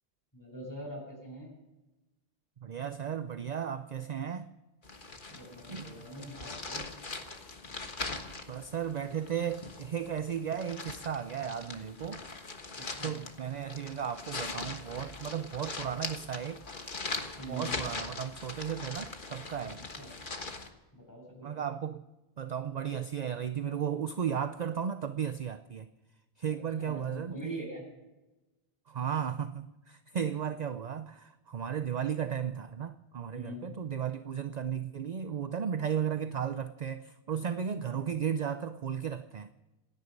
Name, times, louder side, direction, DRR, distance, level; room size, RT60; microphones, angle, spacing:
voice 1, 0.3-1.5 5.3-6.8 12.8-13.2 17.4-17.8 20.0-20.1 20.9-21.6 26.8-27.8 30.2-30.5 33.3-33.6 37.8-38.1, equal, 15° left, 7.4 m, -44 dB
voice 2, 2.6-4.5 5.7-6.0 8.5-12.2 13.0-16.6 17.5-19.8 21.4-22.0 22.4-25.9 26.4-27.7 28.9-39.5, right 8 dB, 45° right, 0.6 m, -35 dB
sound 1, 4.8-20.7, left 3 dB, 45° left, 1.6 m, -41 dB
27.5 x 10.0 x 5.3 m
omnidirectional pair, 1.2 m